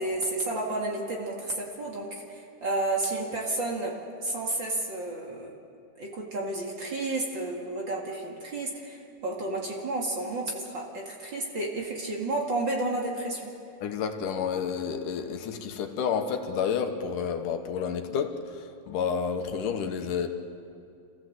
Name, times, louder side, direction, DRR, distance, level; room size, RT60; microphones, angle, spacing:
voice 1, 0.0-5.5 6.0-13.5, right 2 dB, 40° right, -1 dB, 2.6 m, -31 dB
voice 2, 13.8-20.3, left 6 dB, 75° left, 6 dB, 2.7 m, -30 dB
27.0 x 15.5 x 7.9 m, 2.5 s
omnidirectional pair, 3.7 m